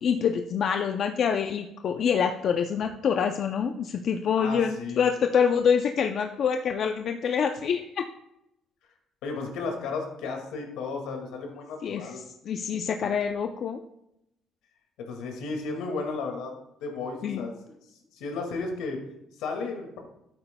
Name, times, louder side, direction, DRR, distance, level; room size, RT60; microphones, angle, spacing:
voice 1, 0.0-8.0 11.8-13.8 17.2-17.4, left 7 dB, 55° left, 5 dB, 0.5 m, -26 dB
voice 2, 4.3-5.0 9.2-12.2 13.0-13.1 15.1-16.5 16.8-17.7 18.1-19.0 19.4-20.0, left 4 dB, 90° left, 2 dB, 2.0 m, -34 dB
12.0 x 8.8 x 2.2 m, 0.83 s
cardioid pair, 115°, 0 cm